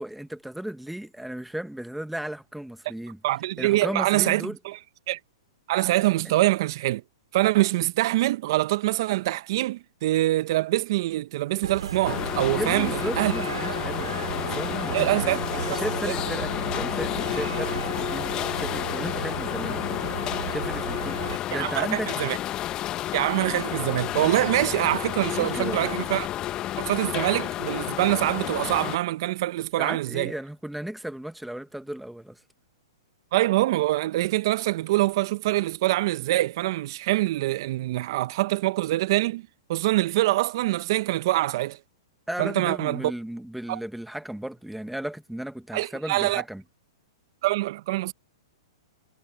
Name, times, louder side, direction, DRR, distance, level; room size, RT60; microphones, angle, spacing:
voice 1, 0.0-3.2 3.6-4.6 12.5-19.8 20.5-21.2 21.5-22.2 25.3-25.9 29.8-32.4 42.3-46.6, right 1 dB, ahead, 1.5 m, -35 dB
voice 2, 3.2-4.8 5.1-5.2 5.7-7.0 7.3-13.3 14.9-15.8 21.5-22.4 23.1-26.3 26.8-30.3 33.3-39.4 39.7-41.8 42.4-43.1 43.7-43.8 45.7-46.4 47.4-48.1, right 17 dB, 55° right, 1.1 m, -24 dB
sound 1, 11.6-21.4, right 6 dB, 85° right, 6.1 m, -34 dB
sound 2, 12.0-29.0, left 13 dB, 30° left, 1.6 m, -31 dB
hypercardioid pair, 125°, 3 cm